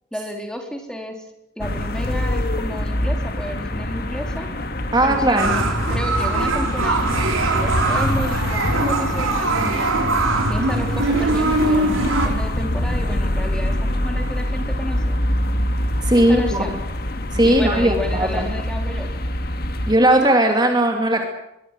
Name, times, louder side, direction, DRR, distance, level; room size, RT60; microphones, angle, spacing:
voice 1, 0.1-1.2 1.6-4.5 5.0-9.9 10.5-15.2 16.3-16.8 17.4-19.1, equal, 5° left, 3 dB, 3.8 m, -32 dB
sound 1, 1.6-19.9, left 1 dB, 45° left, 2.2 m, -25 dB
voice 2, 4.9-5.5 16.0-16.6 17.3-18.5 19.9-21.2, right 1 dB, 20° right, 3 dB, 2.6 m, -17 dB
sound 2, 5.4-12.3, right 2 dB, 85° right, 5.3 m, -21 dB
23.5 x 23.0 x 7.6 m, 0.83 s
head